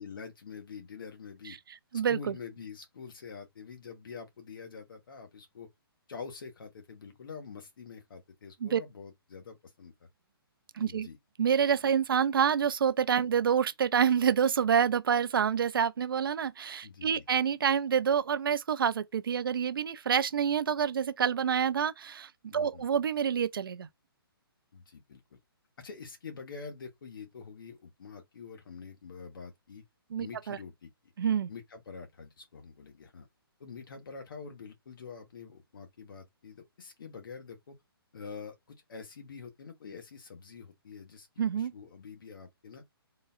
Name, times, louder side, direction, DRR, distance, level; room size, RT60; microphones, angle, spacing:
voice 1, 0.0-1.6 2.1-5.7 6.1-10.1 10.8-11.2 16.8-17.2 22.5-22.8 24.7-25.4 25.8-29.8 30.2-30.9 31.5-33.3 33.6-37.8 38.1-41.3 41.5-42.8, left 5 dB, 60° left, 1.2 m, -46 dB
voice 2, 1.9-2.3 8.6-8.8 10.8-11.1 11.4-23.9 30.1-30.6 31.2-31.5 41.4-41.7, right 7 dB, 60° right, 0.4 m, -27 dB
3.7 x 2.3 x 2.4 m
figure-of-eight pair, 135°, 13 cm